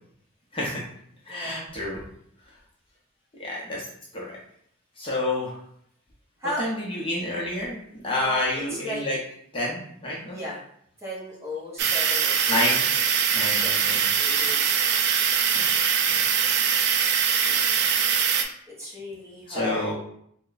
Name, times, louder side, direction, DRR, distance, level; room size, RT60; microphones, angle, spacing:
voice 1, 0.5-0.8 1.3-2.0 3.4-3.9 4.1-4.2 5.0-5.5 6.6-9.2 9.5-10.4 12.5-12.8 13.3-14.0 15.5-15.7 16.1-16.2 17.5-18.5 19.5-19.9, left 1 dB, 25° left, -4 dB, 0.7 m, -29 dB
voice 2, 1.3-1.7 6.4-6.6 8.2-9.0 10.2-10.6 11.0-12.6 13.6-13.8 14.1-14.7 17.5-17.8 18.7-19.9, left 1 dB, 15° right, -6 dB, 0.9 m, -36 dB
sound 1, 11.8-18.4, right 7 dB, 50° right, 0.3 m, -22 dB
3.3 x 2.2 x 3.9 m, 0.68 s
head